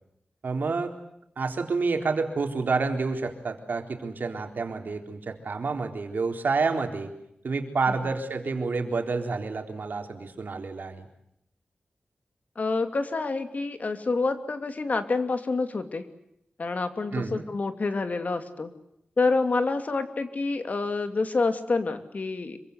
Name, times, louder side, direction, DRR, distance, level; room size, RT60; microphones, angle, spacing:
voice 1, 0.4-0.9 1.4-7.1 7.4-11.1 17.1-17.4, right 4 dB, 70° right, 5 dB, 4.0 m, -29 dB
voice 2, 12.6-16.0 16.6-18.7 19.2-22.6, left 3 dB, 50° left, 8 dB, 2.7 m, -27 dB
26.5 x 24.5 x 8.2 m, 0.78 s
wide cardioid pair, 115°, 3 cm